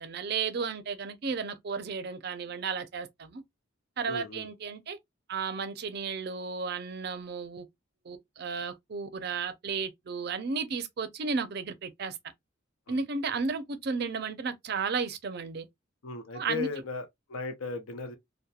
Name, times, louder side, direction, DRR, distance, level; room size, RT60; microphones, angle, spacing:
voice 1, 0.0-3.4 4.0-5.0 5.3-7.7 8.0-12.2 12.9-15.7 16.3-16.7, right 5 dB, 50° right, 0.4 m, -33 dB
voice 2, 4.1-4.5 12.9-13.0 16.0-18.2, left 4 dB, 90° left, 0.6 m, -36 dB
2.8 x 2.2 x 2.2 m
head